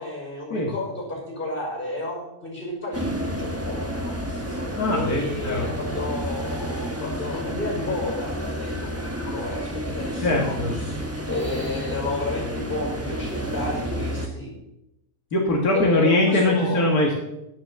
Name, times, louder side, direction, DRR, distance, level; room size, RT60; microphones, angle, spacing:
voice 1, 0.0-11.0 11.3-14.5 15.7-16.9, left 2 dB, 35° left, -2 dB, 5.9 m, -31 dB
sound 1, 2.9-14.3, equal, 10° right, 1.3 m, -30 dB
voice 2, 4.7-5.7 10.2-10.7 15.3-17.2, left 1 dB, 80° left, -1 dB, 2.3 m, -21 dB
11.0 x 9.1 x 7.4 m, 0.90 s
omnidirectional pair, 1.6 m